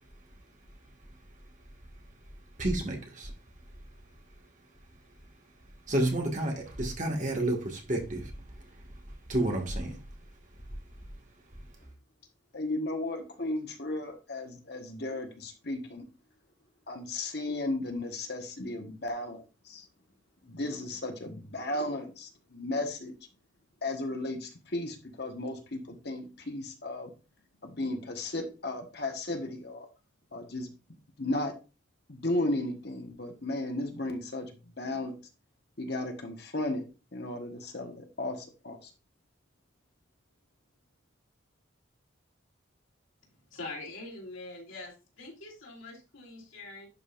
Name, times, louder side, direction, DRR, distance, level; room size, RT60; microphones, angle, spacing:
voice 1, 2.6-3.3 5.9-8.3 9.3-10.0, right 1 dB, 40° right, 1 dB, 1.9 m, -30 dB
voice 2, 12.5-16.0 16.9-19.9 20.4-23.1 23.8-27.1 27.6-29.9 30.3-30.7 31.2-31.5 32.1-35.2 35.8-36.9 37.1-38.9, left 2 dB, 55° left, 4 dB, 1.4 m, -35 dB
voice 3, 43.5-46.9, left 2 dB, 85° left, -1 dB, 3.3 m, -43 dB
11.0 x 5.4 x 2.6 m, 0.30 s
head